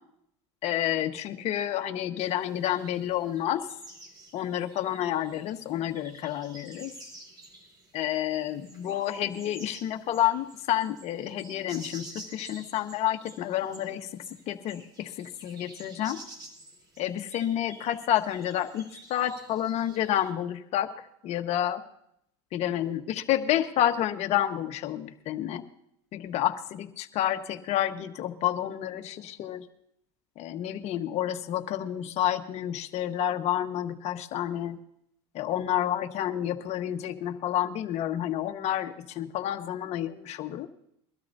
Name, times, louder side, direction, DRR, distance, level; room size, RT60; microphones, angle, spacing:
voice 1, 0.6-3.7 4.3-6.9 7.9-16.2 17.0-18.8 19.1-20.9 21.2-21.8 22.5-25.6 26.1-29.7 30.4-34.8 35.3-40.7, left 11 dB, 50° left, 7 dB, 1.3 m, -29 dB
sound 1, 2.2-20.3, right 2 dB, 30° right, 3.5 m, -50 dB
23.0 x 12.5 x 2.7 m, 0.74 s
supercardioid pair, 115°, 15 cm